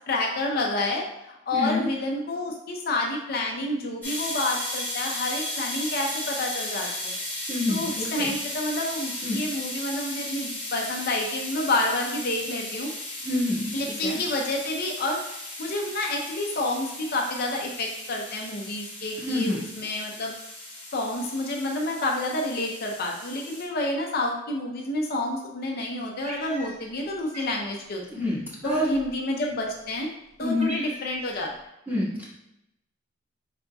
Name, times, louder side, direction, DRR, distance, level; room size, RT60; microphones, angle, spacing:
voice 1, 0.1-7.1 7.7-12.9 13.7-15.2 15.6-20.3 20.9-28.0 28.6-30.1 30.4-31.5, left 2 dB, 50° left, 0 dB, 0.6 m, -29 dB
voice 2, 1.5-1.9 7.5-8.3 9.2-9.4 13.2-13.7 14.0-14.2 19.2-19.6 28.1-28.9 30.4-30.7 31.9-32.3, left 2 dB, 10° right, -8 dB, 1.4 m, -27 dB
sound 1, 4.0-23.6, left 1 dB, 10° left, 1.3 m, -36 dB
Cat, 26.2-27.0 27.3-27.6 28.6-29.2 29.9-30.0 30.3-31.3, right 1 dB, 35° right, 0.7 m, -41 dB
4.9 x 4.0 x 2.3 m, 0.85 s
head